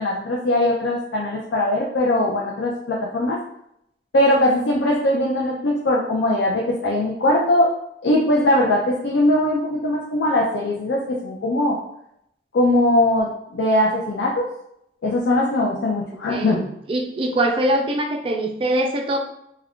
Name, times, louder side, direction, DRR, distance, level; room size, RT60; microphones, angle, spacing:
voice 1, 0.0-3.4 4.1-7.7 8.0-11.8 12.5-14.5 15.0-16.7, left 1 dB, 80° left, -3 dB, 0.4 m, -20 dB
voice 2, 16.9-19.3, right 1 dB, 30° right, 3 dB, 0.3 m, -22 dB
2.3 x 2.2 x 3.5 m, 0.77 s
head